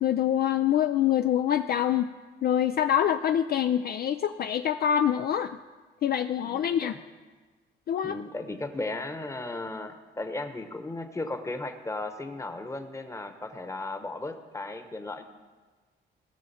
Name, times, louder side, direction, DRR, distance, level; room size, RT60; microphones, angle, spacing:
voice 1, 0.0-2.1 2.4-5.6 6.0-7.0 7.9-8.2, left 10 dB, 50° left, 8 dB, 0.4 m, -25 dB
voice 2, 6.4-7.0 8.0-15.2, left 2 dB, 15° left, 7 dB, 1.0 m, -36 dB
19.0 x 6.3 x 4.2 m, 1.4 s
cardioid pair, 90°, 20 cm